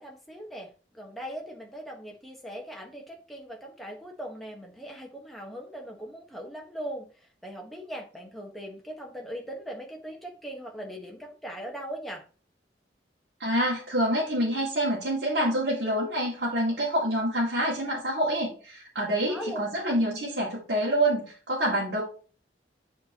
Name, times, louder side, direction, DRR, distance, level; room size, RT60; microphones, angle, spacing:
voice 1, 0.0-7.1 7.4-12.2 19.3-20.0, equal, ahead, -1 dB, 1.3 m, -40 dB
voice 2, 13.4-22.0, right 1 dB, 65° right, -6 dB, 2.3 m, -27 dB
8.5 x 4.4 x 2.9 m, 0.37 s
head